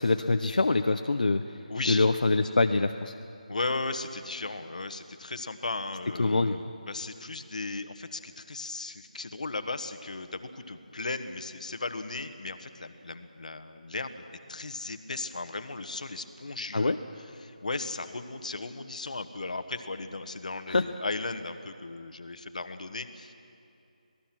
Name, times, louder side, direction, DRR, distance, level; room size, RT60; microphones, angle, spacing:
voice 1, 0.0-1.4 1.9-3.1 6.2-6.5 16.7-17.0 20.7-20.8, left 3 dB, 80° left, 6 dB, 0.8 m, -24 dB
voice 2, 1.7-2.1 3.5-23.3, left 3 dB, 60° left, 9 dB, 1.3 m, -36 dB
26.5 x 19.0 x 6.0 m, 2.6 s
figure-of-eight pair, 175°, 5 cm